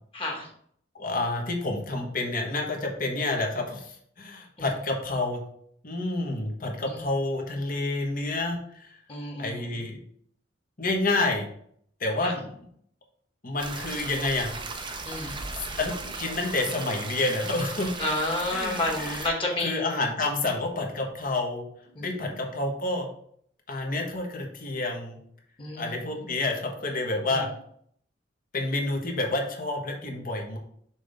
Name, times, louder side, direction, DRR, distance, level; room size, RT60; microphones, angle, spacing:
voice 1, 0.1-0.5 4.6-4.7 6.8-7.1 9.1-9.8 12.2-12.3 15.0-15.4 18.0-20.0 21.9-22.3 25.6-26.1 27.3-27.4, left 2 dB, 30° left, -1 dB, 1.6 m, -31 dB
voice 2, 0.9-5.4 5.8-9.0 9.4-10.0 10.8-11.5 12.0-12.5 13.4-14.5 15.8-17.9 18.5-19.3 19.6-21.7 22.0-23.1 23.7-25.2 25.8-27.5 28.5-30.6, left 2 dB, 50° left, 1 dB, 1.3 m, -29 dB
sound 1, 13.6-19.3, right 3 dB, 25° right, 0.7 m, -37 dB
6.1 x 3.5 x 5.2 m, 0.65 s
head